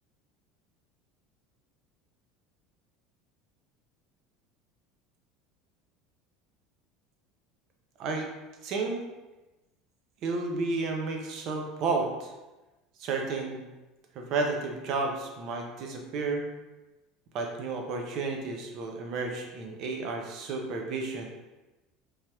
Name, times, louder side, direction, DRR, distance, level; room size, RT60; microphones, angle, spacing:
voice 1, 8.0-8.3 8.6-9.0 10.2-12.3 13.0-13.6 14.2-16.5 17.3-21.2, right 3 dB, 40° right, 2 dB, 0.5 m, -32 dB
3.2 x 2.3 x 2.8 m, 1.1 s
cardioid pair, 170°, 0 cm